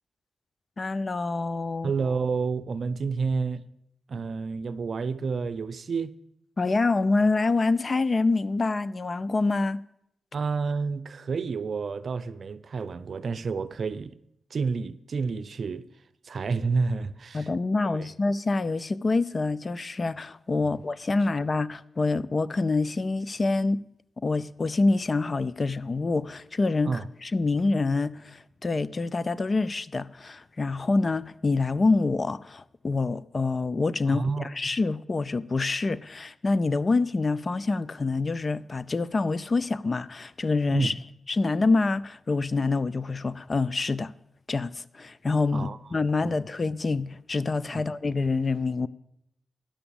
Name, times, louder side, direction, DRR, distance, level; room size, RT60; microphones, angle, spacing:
voice 1, 0.8-1.9 6.6-9.8 17.3-23.8 24.2-34.3 34.5-40.9 41.3-44.1 44.5-48.9, left 3 dB, 45° left, 0.4 m, -26 dB
voice 2, 1.8-3.6 4.1-6.1 10.3-14.2 14.5-15.9 16.2-17.5 18.0-18.1 20.6-20.8 26.9-27.1 34.1-34.5 40.7-40.9 45.5-45.8 46.2-46.3 47.7-47.8, right 4 dB, 60° right, 0.5 m, -29 dB
10.5 x 7.0 x 7.0 m
cardioid pair, 55°, 0 cm